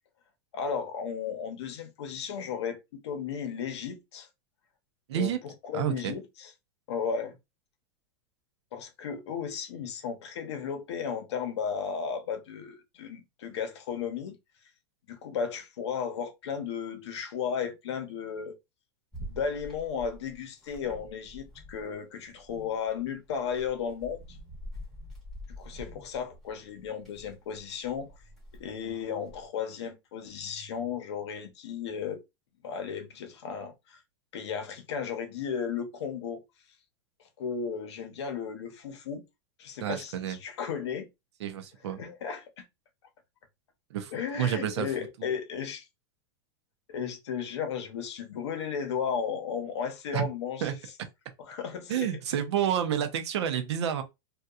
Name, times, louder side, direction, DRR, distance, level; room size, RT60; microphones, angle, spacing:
voice 1, 0.5-4.3 5.1-6.5 6.9-7.4 8.7-14.4 15.1-18.6 19.2-24.2 25.6-28.1 28.6-32.2 32.6-34.0 34.3-36.4 37.4-39.2 39.6-41.1 42.0-42.6 44.1-45.9 46.9-50.8 51.4-52.2, left 7 dB, 85° left, 0.7 m, -34 dB
voice 2, 5.7-6.1 39.8-40.4 41.4-42.0 43.9-44.1 44.4-44.9 45.2-45.3 50.1-50.3 50.6-50.7 51.9-54.0, right 9 dB, 85° right, 0.6 m, -29 dB
sound 1, 19.1-21.9 22.2-29.4, equal, ahead, 0.9 m, -46 dB
2.8 x 2.2 x 2.3 m
supercardioid pair, 170°, 14 cm